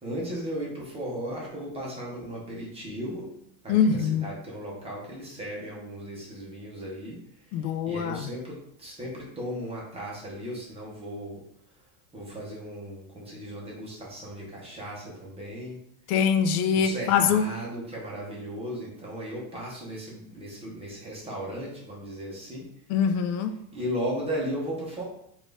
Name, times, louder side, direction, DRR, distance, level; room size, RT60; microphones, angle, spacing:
voice 1, 0.0-3.3 3.6-7.2 7.5-7.6 7.8-11.4 12.1-15.8 16.7-22.7 23.7-25.0, equal, 15° right, 0.8 m, -36 dB
voice 2, 3.7-4.2 7.5-8.2 16.1-17.4 22.9-23.5, left 7 dB, 70° left, 0.5 m, -23 dB
4.0 x 2.6 x 3.4 m
supercardioid pair, 160°, 46 cm